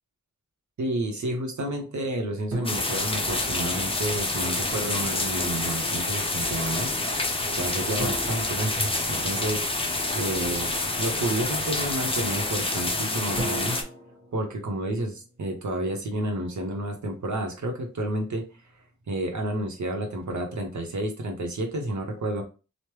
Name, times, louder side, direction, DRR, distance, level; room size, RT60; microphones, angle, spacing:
voice 1, 0.8-7.2 7.5-9.6 10.1-13.8 14.3-18.4 19.1-22.4, right 1 dB, 80° right, 3 dB, 0.8 m, -30 dB
sound 1, 2.5-4.1 8.0-9.9 13.4-15.6, right 1 dB, 50° right, 1.2 m, -38 dB
sound 2, 2.6-13.8, left 2 dB, 20° left, 0.5 m, -28 dB
3.1 x 2.1 x 3.0 m, 0.32 s
wide cardioid pair, 85°, 29 cm